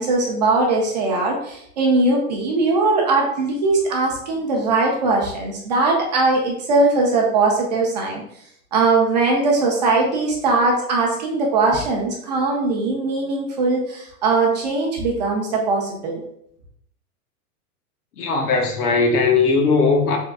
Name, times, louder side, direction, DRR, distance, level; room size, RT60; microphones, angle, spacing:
voice 1, 0.0-8.2 8.7-16.2, right 3 dB, 30° right, -1 dB, 0.4 m, -20 dB
voice 2, 18.2-20.2, left 4 dB, 80° left, 2 dB, 1.1 m, -18 dB
3.6 x 3.0 x 3.3 m, 0.71 s
supercardioid pair, 165°, 45 cm